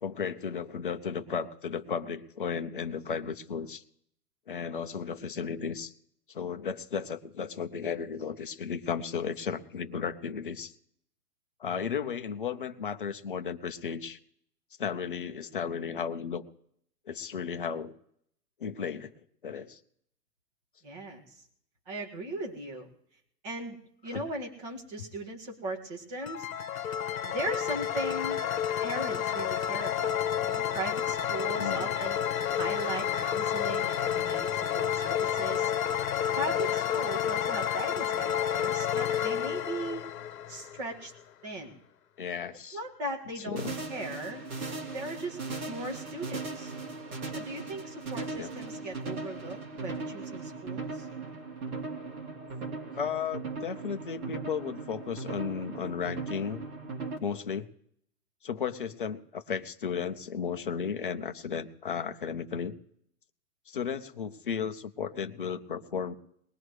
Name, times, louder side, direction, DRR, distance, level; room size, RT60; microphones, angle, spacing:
voice 1, 0.0-3.8 4.5-5.9 6.3-10.7 11.6-14.2 14.8-16.5 17.1-17.9 18.6-19.1 19.4-19.8 24.1-24.2 31.6-31.9 42.2-42.8 43.4-43.7 48.3-48.5 52.9-56.6 57.2-57.7 58.4-62.7 63.7-66.1, left 6 dB, 35° left, 8 dB, 0.6 m, -34 dB
voice 2, 20.8-21.4 21.9-22.9 23.4-23.8 24.0-26.5 27.2-28.4 28.8-30.2 30.4-32.2 32.5-35.7 36.4-40.1 40.5-41.1 41.4-41.8 42.7-43.6 43.9-44.4 44.9-45.4 45.7-46.7 47.3-51.1, right 1 dB, 25° right, -1 dB, 2.0 m, -38 dB
sound 1, 26.2-41.0, left 9 dB, 60° left, 1.1 m, -30 dB
sound 2, 43.6-57.2, right 3 dB, 65° right, 3.1 m, -38 dB
21.5 x 20.0 x 3.2 m, 0.72 s
hypercardioid pair, 180°, 47 cm